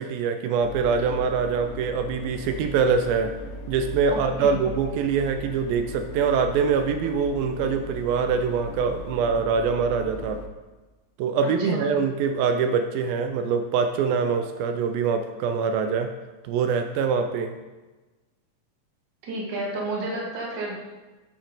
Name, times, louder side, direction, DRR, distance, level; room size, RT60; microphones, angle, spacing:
voice 1, 0.0-3.3 3.7-10.4 11.2-16.1 16.4-17.5, right 5 dB, 85° right, 7 dB, 2.3 m, -24 dB
sound 1, 0.6-10.5, left 1 dB, 90° left, 1.9 m, -38 dB
voice 2, 4.1-4.6 11.6-11.9 19.2-20.8, right 2 dB, 45° right, -3 dB, 1.5 m, -31 dB
12.5 x 4.4 x 3.8 m, 1.2 s
omnidirectional pair, 4.3 m